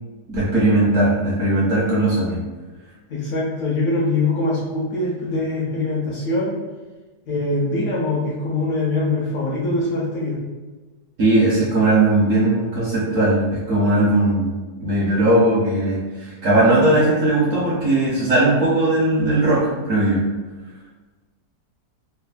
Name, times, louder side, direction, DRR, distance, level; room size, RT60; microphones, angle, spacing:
voice 1, 0.3-2.4 11.2-14.5 14.8-20.2, right 2 dB, 65° right, -6 dB, 0.8 m, -18 dB
voice 2, 3.1-6.6 7.3-10.4, left 2 dB, 70° left, -4 dB, 0.9 m, -23 dB
3.2 x 2.0 x 2.2 m, 1.2 s
omnidirectional pair, 1.8 m